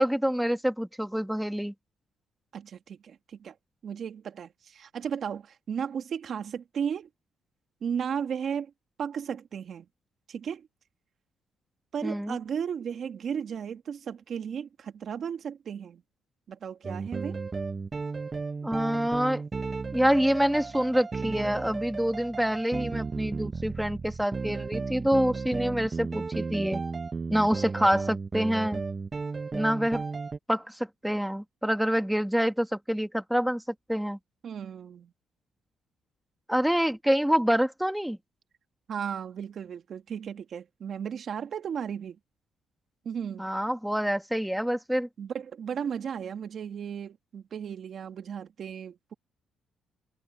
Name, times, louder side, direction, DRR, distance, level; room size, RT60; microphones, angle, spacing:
voice 1, 0.0-1.7 12.0-12.4 18.6-19.4 19.9-26.8 27.3-28.8 29.5-30.0 30.5-33.6 33.9-34.2 36.5-38.2 43.4-45.1, equal, 5° right, 2.3 m, -26 dB
voice 2, 2.5-3.5 3.8-7.1 7.8-8.7 9.0-9.9 10.3-10.7 11.9-16.0 16.5-17.4 34.4-35.1 38.9-42.2 43.1-43.5 45.2-49.1, right 7 dB, 60° right, 1.8 m, -35 dB
sound 1, 16.8-30.4, right 4 dB, 30° right, 0.9 m, -34 dB
cardioid pair, 90°, 0 cm